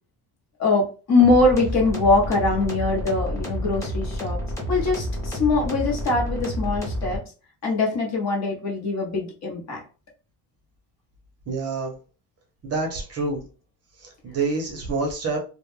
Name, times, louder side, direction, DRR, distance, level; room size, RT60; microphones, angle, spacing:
voice 1, 0.6-4.4 4.7-7.2 7.6-9.8, left 3 dB, 40° left, -1 dB, 0.8 m, -22 dB
sound 1, 1.2-7.2, equal, 5° left, 0.6 m, -29 dB
voice 2, 11.5-11.9 12.6-13.4 14.0-15.4, right 3 dB, 35° right, 0 dB, 0.6 m, -27 dB
2.2 x 2.1 x 3.1 m, 0.35 s
cardioid pair, 155°, 44 cm